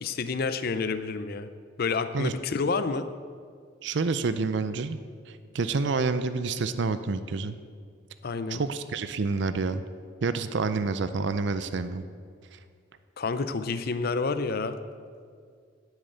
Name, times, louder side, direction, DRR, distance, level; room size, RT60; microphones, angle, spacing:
voice 1, 0.0-1.5 1.8-3.1 8.2-8.6 13.2-14.8, left 4 dB, 50° left, 11 dB, 0.5 m, -29 dB
voice 2, 3.8-5.0 5.3-7.5 8.5-9.8 10.2-12.0 12.5-12.6, right 4 dB, 65° right, 11 dB, 0.5 m, -28 dB
9.9 x 8.1 x 7.8 m, 2.1 s
head